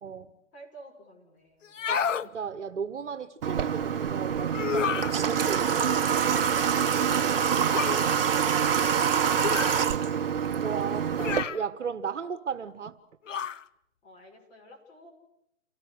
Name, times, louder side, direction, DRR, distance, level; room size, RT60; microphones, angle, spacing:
voice 1, 0.0-0.4 1.9-5.9 10.6-13.0, right 6 dB, 65° right, 10 dB, 1.7 m, -36 dB
voice 2, 0.5-2.1 14.0-15.1, equal, 20° left, 0 dB, 6.4 m, -51 dB
sound 1, 1.6-2.3 4.5-5.2 7.7-8.0 9.4-9.8 11.2-11.6 13.3-13.6, left 7 dB, 70° left, 1.1 m, -30 dB
Water / Water tap faucet, 3.4-11.4, right 7 dB, 45° right, 1.3 m, -25 dB
29.0 x 18.0 x 8.3 m, 0.77 s
hypercardioid pair, 150°, 39 cm